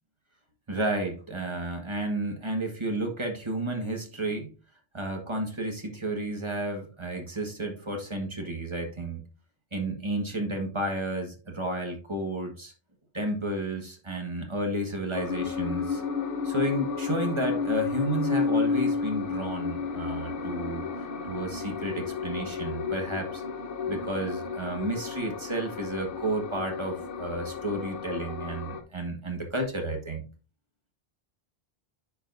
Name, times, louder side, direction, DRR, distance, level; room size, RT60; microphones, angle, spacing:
voice 1, 0.7-4.5 4.9-9.2 9.7-12.7 13.1-16.0 16.4-20.8 21.2-23.4 23.9-30.2, right 1 dB, 30° right, 3 dB, 1.4 m, -32 dB
sound 1, 15.1-28.8, left 5 dB, 60° left, 1.0 m, -32 dB
9.9 x 4.8 x 2.6 m, 0.35 s
omnidirectional pair, 1.0 m